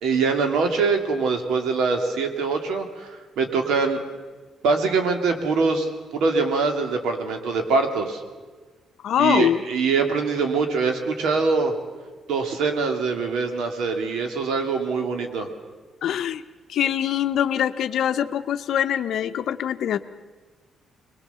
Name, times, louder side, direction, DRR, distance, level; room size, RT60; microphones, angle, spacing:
voice 1, 0.0-3.1 3.4-4.0 4.6-8.2 9.2-11.7 12.3-15.5, right 4 dB, 85° right, 5 dB, 2.4 m, -23 dB
voice 2, 9.0-9.6 16.0-16.4 16.7-20.0, left 10 dB, 70° left, 9 dB, 0.8 m, -23 dB
23.0 x 21.5 x 6.9 m, 1.4 s
cardioid pair, 110°, 0 cm